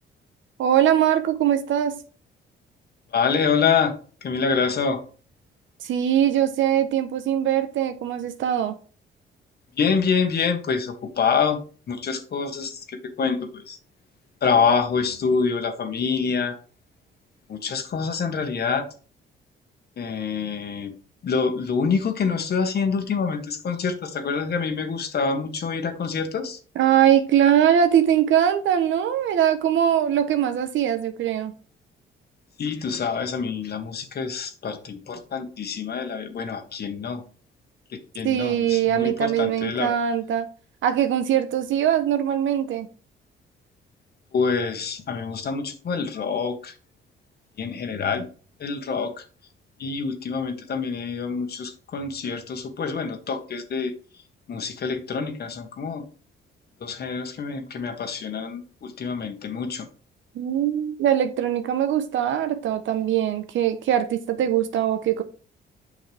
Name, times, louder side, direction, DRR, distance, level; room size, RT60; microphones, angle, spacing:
voice 1, 0.6-2.0 5.8-8.8 26.7-31.5 38.2-40.5 40.8-42.9 60.3-65.2, right 10 dB, 75° right, 1.1 m, -21 dB
voice 2, 3.1-3.9 4.2-5.0 9.7-11.6 11.9-13.8 14.4-16.6 17.5-18.9 20.0-20.9 21.2-26.6 32.6-37.2 37.9-39.9 44.3-46.7 47.6-48.3 48.6-49.2 49.8-53.9 54.5-56.0 56.8-59.9, left 5 dB, 55° left, 1.5 m, -26 dB
8.4 x 5.6 x 3.5 m
cardioid pair, 90°, 20 cm